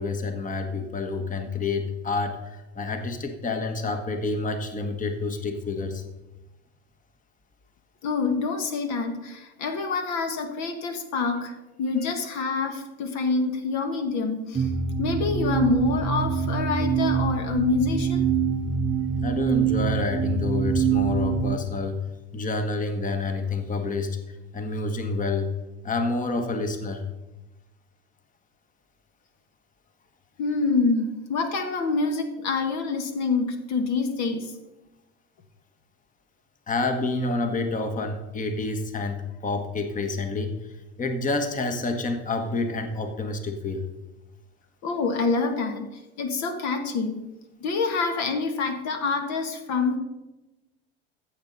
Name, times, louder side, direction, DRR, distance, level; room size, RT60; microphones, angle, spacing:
voice 1, 0.0-6.0 19.2-22.0 22.3-24.1 24.5-25.5 25.8-27.0 36.7-40.5 41.0-43.9, left 3 dB, 25° left, 6 dB, 1.3 m, -28 dB
voice 2, 8.0-14.7 15.0-18.3 30.4-34.5 44.8-47.2 47.6-50.0, left 4 dB, 55° left, 6 dB, 1.4 m, -26 dB
sound 1, 14.5-21.6, right 7 dB, 20° right, 0.7 m, -25 dB
15.0 x 7.2 x 4.0 m, 1.0 s
hypercardioid pair, 80°, 33 cm